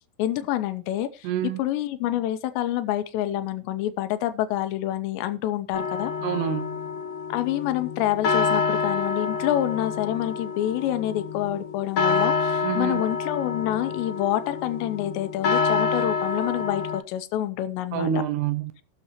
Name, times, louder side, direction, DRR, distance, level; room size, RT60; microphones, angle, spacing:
voice 1, 0.2-1.3 1.6-6.1 7.3-18.1, left 12 dB, 85° left, 3.1 m, -27 dB
voice 2, 1.2-1.6 6.2-6.8 12.6-13.0 17.9-18.7, right 9 dB, 75° right, 2.9 m, -27 dB
sound 1, 5.7-17.0, left 5 dB, 70° left, 1.8 m, -27 dB
20.0 x 6.8 x 2.9 m
omnidirectional pair, 5.0 m